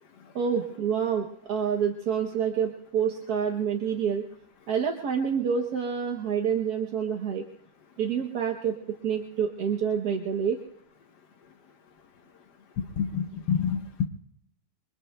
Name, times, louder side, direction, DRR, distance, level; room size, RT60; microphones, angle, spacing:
voice 1, 0.3-4.2 4.7-7.4 8.0-8.7 9.0-10.6, right 7 dB, 70° right, 2 dB, 1.4 m, -27 dB
voice 2, 13.0-14.1, left 7 dB, 85° left, 3 dB, 1.4 m, -27 dB
26.0 x 23.5 x 2.2 m, 0.70 s
omnidirectional pair, 1.7 m